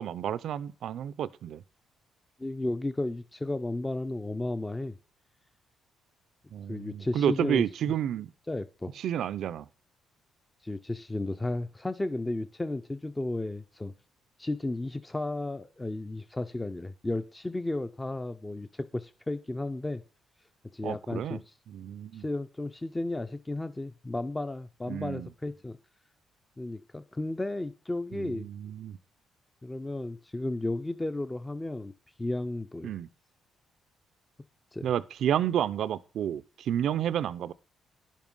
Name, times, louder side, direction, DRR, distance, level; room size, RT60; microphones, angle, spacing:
voice 1, 0.0-1.6 6.5-8.3 9.0-9.7 20.8-21.4 21.7-22.2 24.9-25.3 28.1-29.0 32.8-33.1 34.8-37.5, right 10 dB, 70° right, 0.4 m, -30 dB
voice 2, 2.4-5.0 6.7-7.6 8.5-8.9 10.6-13.9 14.4-20.0 20.7-21.5 22.1-25.8 26.6-28.5 29.6-31.9 32.2-32.9 34.7-34.9, left 2 dB, 15° left, 0.5 m, -33 dB
10.5 x 7.2 x 5.4 m
cardioid pair, 90°, 0 cm